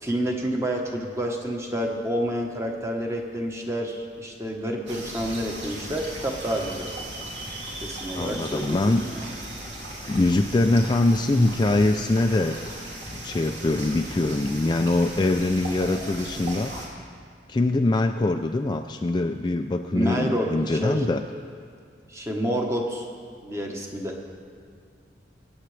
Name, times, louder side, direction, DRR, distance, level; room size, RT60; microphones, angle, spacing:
voice 1, 0.0-6.9 7.8-9.2 19.9-21.0 22.1-23.1 23.4-24.2, equal, 15° right, 1 dB, 1.1 m, -29 dB
sound 1, 4.9-16.9, right 1 dB, 75° right, 2.6 m, -37 dB
voice 2, 8.1-9.0 10.1-12.7 13.1-16.7 17.5-21.2, left 2 dB, 25° left, 5 dB, 0.3 m, -23 dB
24.0 x 8.7 x 3.3 m, 2.2 s
head